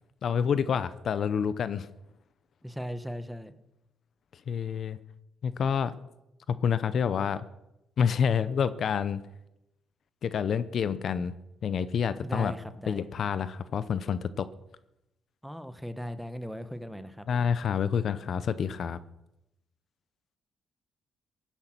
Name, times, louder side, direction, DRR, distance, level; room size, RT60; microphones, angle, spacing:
voice 1, 0.2-1.9 4.5-5.0 5.4-5.9 6.5-7.4 8.0-9.2 10.2-11.4 11.6-12.5 12.9-14.5 17.3-19.0, left 7 dB, 60° left, 15 dB, 0.7 m, -28 dB
voice 2, 2.6-3.5 12.2-13.0 15.4-17.3, equal, ahead, 11 dB, 1.1 m, -37 dB
16.0 x 10.5 x 5.9 m, 0.87 s
cardioid pair, 90°, 0 cm